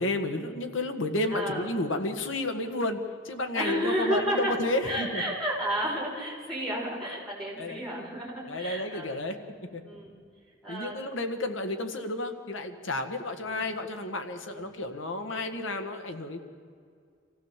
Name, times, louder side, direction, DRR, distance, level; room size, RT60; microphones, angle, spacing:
voice 1, 0.0-3.0 3.3-5.3 7.6-7.9 8.5-9.4 9.7-9.8 10.7-16.4, left 2 dB, 90° left, 6 dB, 1.7 m, -31 dB
voice 2, 1.3-1.7 3.5-10.1 10.6-11.2 13.4-13.6 14.5-14.7, right 1 dB, ahead, -5 dB, 5.8 m, -32 dB
26.5 x 16.0 x 7.5 m, 2.2 s
head